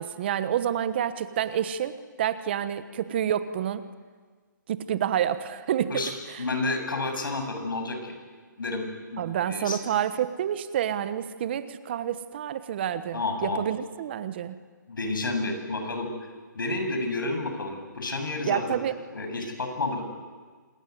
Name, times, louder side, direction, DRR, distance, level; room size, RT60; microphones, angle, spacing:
voice 1, 0.0-3.8 4.7-6.0 9.2-14.6 18.5-18.9, right 10 dB, 30° right, 12 dB, 1.2 m, -28 dB
voice 2, 6.4-8.2 8.6-9.8 13.1-13.6 14.9-16.1 16.5-18.6 19.1-20.0, left 2 dB, 85° left, 5 dB, 7.8 m, -30 dB
27.0 x 21.5 x 9.6 m, 1.5 s
hypercardioid pair, 165°, 11 cm